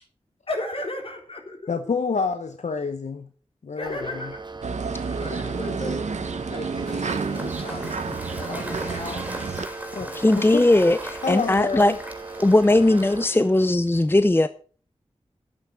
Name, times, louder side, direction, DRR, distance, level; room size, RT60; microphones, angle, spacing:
voice 1, 0.5-1.7 3.8-4.4 5.2-6.1 6.5-9.3, left 1 dB, 55° left, 2 dB, 4.0 m, -35 dB
voice 2, 1.7-3.3 3.6-4.3 9.9-10.7 11.2-12.0, left 4 dB, 80° left, 8 dB, 0.8 m, -28 dB
sound 1, 3.8-13.3, right 3 dB, 40° right, 1.3 m, -38 dB
sound 2, 4.6-9.7, right 5 dB, 85° right, 0.9 m, -30 dB
Cheering / Applause / Crowd, 6.8-13.9, equal, 10° right, 3.9 m, -39 dB
voice 3, 10.1-11.9 12.4-14.5, left 2 dB, 20° left, 12 dB, 0.6 m, -19 dB
10.5 x 8.9 x 6.2 m, 0.43 s
wide cardioid pair, 60°, 12 cm